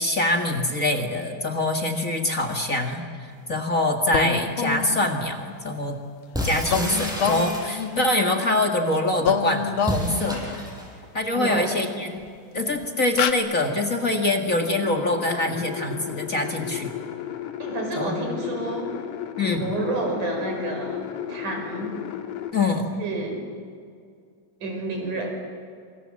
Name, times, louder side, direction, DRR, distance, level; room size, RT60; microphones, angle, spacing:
voice 1, 0.0-6.0 6.4-10.6 11.1-12.2 12.5-16.9 18.0-18.2 19.4-19.7 22.5-22.9, left 1 dB, 30° left, 3 dB, 1.7 m, -24 dB
sound 1, 4.1-5.2 6.7-8.8 9.2-10.7 12.2-12.3 12.7-12.9 13.1-13.3, left 6 dB, 55° left, 1.6 m, -27 dB
sound 2, 6.3-8.1 9.8-10.9, equal, ahead, 6.4 m, -30 dB
voice 2, 11.3-11.7 17.6-19.0 19.4-22.0 23.0-23.5 24.6-25.3, right 3 dB, 70° right, 2 dB, 6.8 m, -30 dB
sound 3, 14.6-22.5, left 11 dB, 80° left, 3.1 m, -34 dB
27.5 x 26.0 x 7.6 m, 2.2 s
omnidirectional pair, 3.7 m